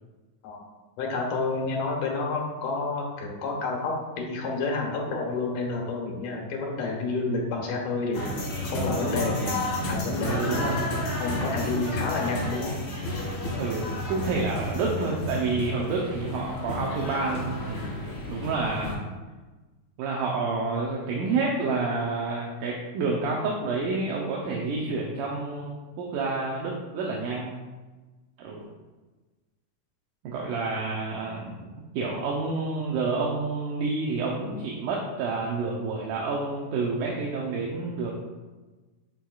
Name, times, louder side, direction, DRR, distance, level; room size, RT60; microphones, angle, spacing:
voice 1, 1.0-10.9 11.2-12.7, left 3 dB, 80° left, 0 dB, 2.7 m, -30 dB
sound 1, 8.1-18.9, left 1 dB, 45° left, 2.0 m, -31 dB
voice 2, 10.2-11.1 13.6-19.0 20.0-27.6 28.4-28.6 30.2-31.7 32.0-38.1, right 3 dB, 80° right, -2 dB, 2.3 m, -29 dB
10.5 x 4.7 x 2.3 m, 1.2 s
omnidirectional pair, 3.6 m